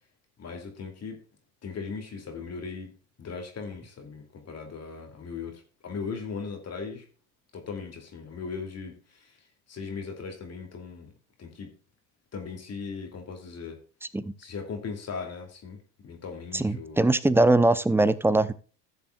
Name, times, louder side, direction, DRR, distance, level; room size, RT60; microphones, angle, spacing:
voice 1, 0.4-1.2 1.6-2.9 3.2-7.1 7.5-9.3 9.7-11.1 11.4-11.7 12.3-13.8 14.4-17.0, left 5 dB, 35° left, 3 dB, 2.7 m, -38 dB
voice 2, 16.5-18.5, right 2 dB, 5° right, 16 dB, 0.6 m, -21 dB
16.0 x 6.9 x 2.4 m, 0.36 s
hypercardioid pair, 75°, 47 cm